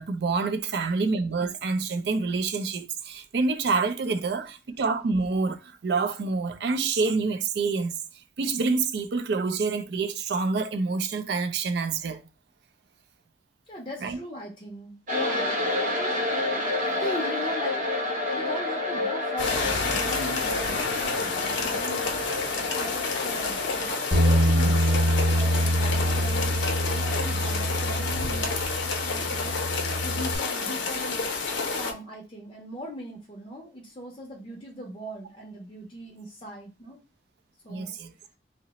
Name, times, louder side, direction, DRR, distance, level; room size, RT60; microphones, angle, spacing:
voice 1, 0.0-8.0 8.4-12.2 14.0-14.2 37.7-38.1, right 4 dB, 60° right, 0.4 m, -27 dB
voice 2, 13.7-16.2 17.0-22.1 22.5-29.6 30.0-31.3 31.7-37.0 37.6-38.0, equal, 25° left, 0.5 m, -39 dB
sound 1, 15.1-29.7, left 2 dB, 45° right, 0.8 m, -31 dB
sound 2, 19.4-31.9, left 4 dB, 85° left, 0.6 m, -29 dB
Bass guitar, 24.1-30.4, equal, 15° right, 0.9 m, -25 dB
2.8 x 2.0 x 3.9 m
head